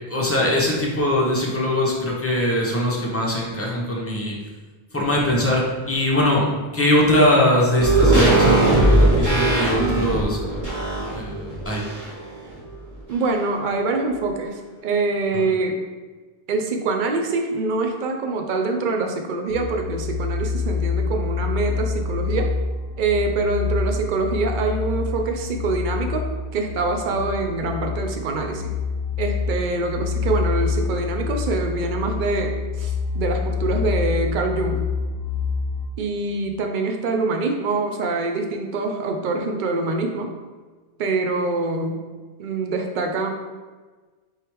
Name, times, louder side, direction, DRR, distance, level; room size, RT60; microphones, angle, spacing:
voice 1, 0.1-4.4 4.9-10.4 11.1-11.8, left 1 dB, 15° left, -3 dB, 0.6 m, -21 dB
sound 1, 7.8-12.3 12.6-12.7, right 2 dB, 20° right, 0.9 m, -19 dB
voice 2, 13.1-15.8 16.5-22.5 23.0-26.2 26.5-28.7 29.2-32.5 32.8-34.8 36.0-40.3 41.0-42.0 42.4-43.3, right 3 dB, 55° right, 3 dB, 0.6 m, -25 dB
sound 2, 19.5-35.9, left 5 dB, 60° left, 1.0 m, -26 dB
4.7 x 3.3 x 3.0 m, 1.4 s
omnidirectional pair, 1.1 m